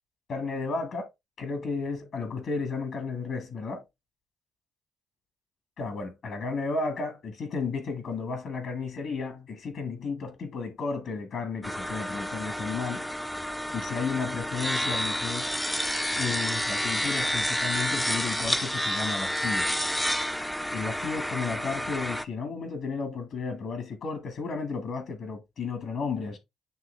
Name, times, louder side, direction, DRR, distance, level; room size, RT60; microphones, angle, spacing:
voice 1, 0.3-1.1 1.4-3.8 5.8-13.0 13.7-15.5 16.2-19.7 20.7-26.4, left 4 dB, 65° left, 1.9 m, -33 dB
sound 1, 11.6-22.2, equal, 5° left, 0.5 m, -30 dB
9.2 x 3.1 x 3.4 m
cardioid pair, 90°, 0 cm